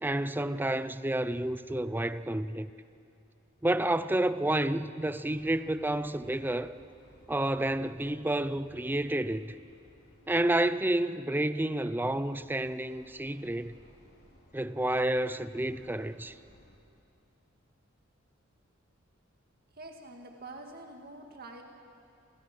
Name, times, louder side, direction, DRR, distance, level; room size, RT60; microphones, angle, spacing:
voice 1, 0.0-2.7 3.6-6.7 7.3-9.5 10.3-13.7 14.5-16.3, right 1 dB, 10° right, 0.6 m, -30 dB
sound 1, 5.2-10.7 12.1-16.8, equal, 55° left, 4.5 m, -59 dB
voice 2, 19.8-21.6, right 2 dB, 50° right, 2.1 m, -46 dB
29.0 x 28.5 x 6.1 m
head